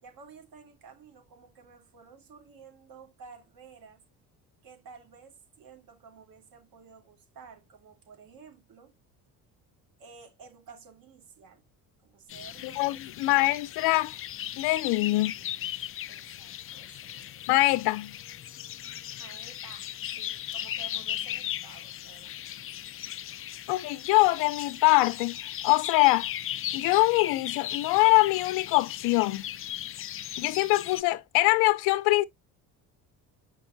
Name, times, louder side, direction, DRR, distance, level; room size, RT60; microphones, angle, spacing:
voice 1, 0.0-4.0 4.6-8.9 10.0-11.6 12.0-13.4 15.2-15.7 16.1-17.4 19.1-19.9 20.2-22.4, right 5 dB, 65° right, 3.2 m, -52 dB
sound 1, 12.3-31.0, left 12 dB, 35° left, 0.4 m, -37 dB
voice 2, 12.8-14.2 14.6-15.3 17.5-18.1 23.7-26.3 26.7-29.5 30.4-32.2, left 21 dB, 85° left, 0.7 m, -23 dB
8.1 x 5.3 x 2.6 m
cardioid pair, 105°, 37 cm